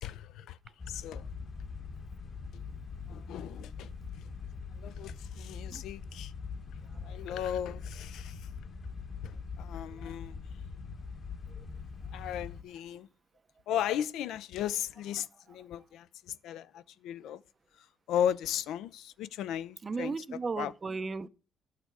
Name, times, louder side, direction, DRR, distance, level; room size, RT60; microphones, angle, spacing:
voice 1, 0.0-0.6 0.9-1.3 3.1-3.9 4.8-6.3 7.0-8.4 9.2-9.3 9.6-10.3 12.1-13.1 13.7-17.4 18.1-20.1 20.6-20.7, left 10 dB, 85° left, 0.4 m, -36 dB
sound 1, 0.8-12.6, left 5 dB, 45° left, 1.1 m, -42 dB
voice 2, 19.8-21.3, right 4 dB, 35° right, 0.5 m, -36 dB
11.0 x 6.6 x 4.7 m
cardioid pair, 90°, 0 cm